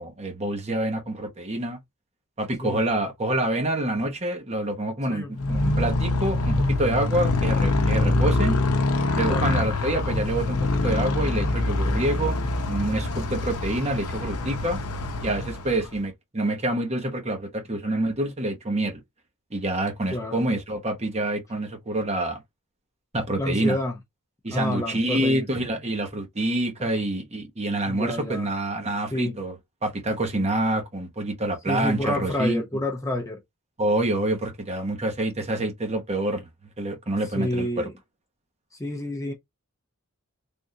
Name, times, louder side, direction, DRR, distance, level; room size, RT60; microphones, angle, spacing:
voice 1, 0.0-1.8 2.4-8.6 9.1-14.8 15.2-19.0 19.5-22.4 23.1-23.8 24.4-29.5 29.8-32.6 33.8-36.5 36.8-37.9, right 1 dB, 30° right, 1.0 m, -27 dB
Motorcycle, 5.3-16.0, left 2 dB, 80° left, 0.7 m, -25 dB
voice 2, 23.4-24.0 24.5-25.4 26.8-27.0 27.9-28.5 29.1-29.4 31.7-33.4 37.3-37.9 38.7-39.3, left 1 dB, 15° left, 0.7 m, -29 dB
3.6 x 2.5 x 2.7 m
head